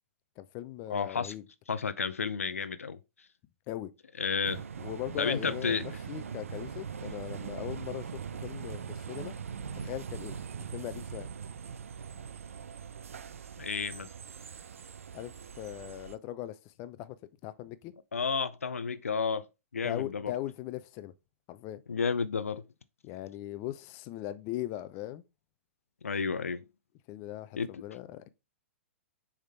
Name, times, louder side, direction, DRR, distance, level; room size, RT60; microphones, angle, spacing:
voice 1, 0.4-1.4 3.7-3.9 4.8-9.3 9.7-10.4 10.7-11.3 15.1-17.2 17.4-17.9 19.8-21.1 21.5-21.8 23.0-25.2 27.1-28.3, left 14 dB, 35° left, 0.6 m, -39 dB
voice 2, 0.9-1.3 1.7-3.0 4.2-4.6 5.2-5.8 13.6-14.1 18.1-19.4 19.7-20.3 21.9-22.6 26.0-26.6 27.6-27.8, left 5 dB, 90° left, 0.5 m, -31 dB
sound 1, 4.4-16.2, right 7 dB, 80° right, 0.5 m, -41 dB
6.6 x 3.7 x 4.2 m
hypercardioid pair, 120°, 7 cm